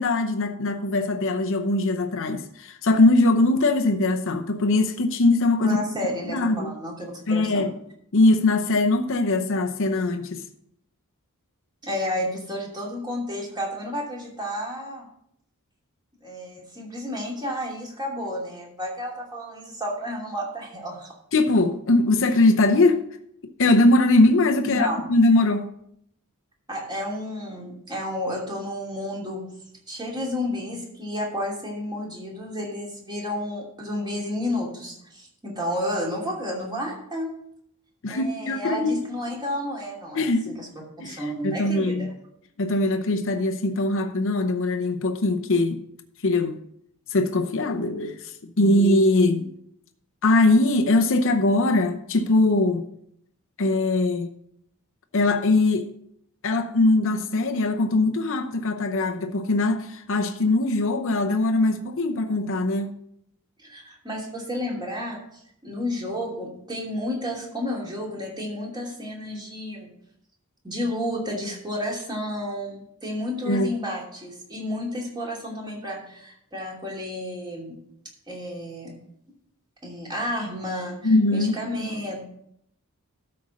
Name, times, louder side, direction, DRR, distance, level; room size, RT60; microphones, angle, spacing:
voice 1, 0.0-5.8 6.3-6.8 7.3-7.7 8.1-10.4 21.3-23.0 23.6-25.7 38.0-39.0 40.1-40.6 41.0-42.1 42.6-45.8 46.2-46.6 47.1-49.5 50.2-52.9 53.6-54.3 55.1-55.9 56.4-63.0 73.5-73.7 81.0-81.6, left 2 dB, 65° left, 0.8 m, -21 dB
voice 2, 5.6-7.7 11.8-15.1 16.2-21.1 24.6-25.1 26.7-29.4 29.9-37.3 38.1-40.7 41.0-42.1 63.6-65.2 65.6-69.9 70.6-77.8 78.3-78.9 79.8-82.3, left 1 dB, 20° right, 2.8 m, -31 dB
12.5 x 4.4 x 6.3 m
head